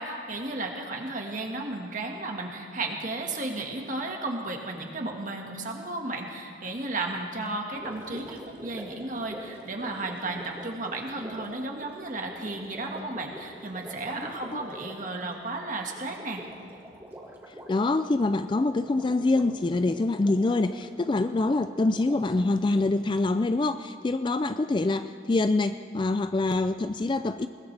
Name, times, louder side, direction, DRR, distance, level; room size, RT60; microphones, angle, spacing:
voice 1, 0.0-16.4, right 2 dB, 40° right, 1 dB, 1.7 m, -34 dB
Gurgling, 7.7-23.0, equal, 10° right, 1.8 m, -45 dB
voice 2, 17.7-27.5, left 2 dB, 25° left, 11 dB, 0.3 m, -25 dB
21.0 x 19.5 x 3.4 m, 2.1 s
head